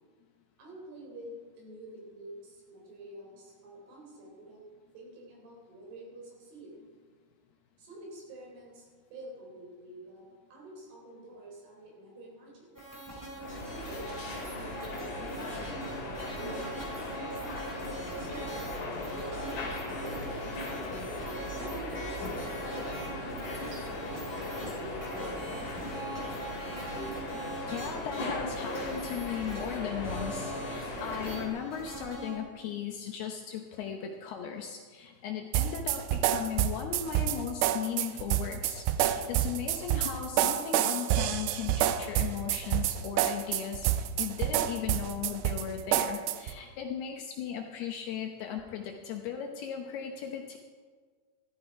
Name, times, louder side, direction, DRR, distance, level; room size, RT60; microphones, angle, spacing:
voice 1, 0.6-4.6 4.9-6.7 7.8-12.7 13.7-17.4 18.2-22.6 23.1-25.8, right 1 dB, 55° right, -1 dB, 5.5 m, -48 dB
sound 1, 12.7-32.4, right 1 dB, 5° right, 3.2 m, -42 dB
sound 2, 13.4-31.5, left 2 dB, 50° left, 3.3 m, -38 dB
voice 2, 27.7-50.6, left 8 dB, 75° left, 3 dB, 2.4 m, -37 dB
sound 3, 35.5-46.6, right 12 dB, 85° right, 2.5 m, -28 dB
14.0 x 14.0 x 4.7 m, 1.6 s
omnidirectional pair, 5.6 m